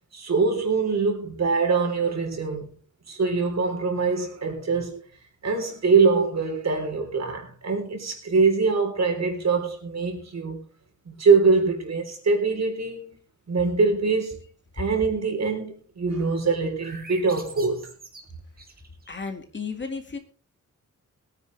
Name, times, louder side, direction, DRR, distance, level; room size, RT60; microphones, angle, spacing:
voice 1, 0.1-2.7 3.1-5.0 5.4-10.6 11.1-13.2 13.5-14.4 14.7-17.9, right 4 dB, 60° right, 3.9 m, -23 dB
sound 1, 16.6-19.3, right 3 dB, 30° right, 3.0 m, -45 dB
voice 2, 19.1-20.2, left 5 dB, 40° left, 2.1 m, -33 dB
21.5 x 9.8 x 3.4 m
wide cardioid pair, 150°, 30 cm